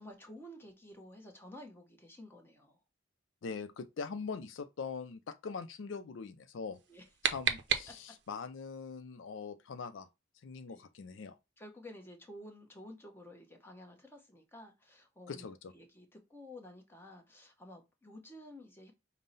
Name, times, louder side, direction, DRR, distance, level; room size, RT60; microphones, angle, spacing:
voice 1, 0.0-2.8 6.9-7.0 10.7-10.8 11.6-15.5 15.7-18.9, left 1 dB, 10° left, 0.9 m, -52 dB
voice 2, 3.4-6.8 7.2-10.1 10.4-11.4 15.3-15.7, left 5 dB, 85° left, 0.4 m, -42 dB
sound 1, 6.7-8.4, right 8 dB, 65° right, 0.6 m, -34 dB
5.5 x 2.1 x 3.9 m
head